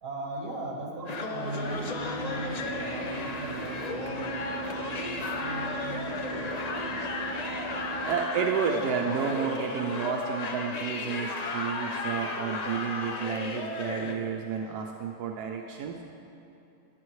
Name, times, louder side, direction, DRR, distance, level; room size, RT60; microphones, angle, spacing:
voice 1, 0.0-7.0 15.3-15.6, right 1 dB, 60° right, -1 dB, 2.0 m, -39 dB
sound 1, 1.1-14.1, left 3 dB, 85° left, 0.3 m, -34 dB
Car / Idling, 1.6-8.2, right 4 dB, 50° left, 3.3 m, -38 dB
voice 2, 8.0-15.9, right 7 dB, 90° right, 1 dB, 1.2 m, -31 dB
19.0 x 7.8 x 3.2 m, 2.8 s
omnidirectional pair, 1.6 m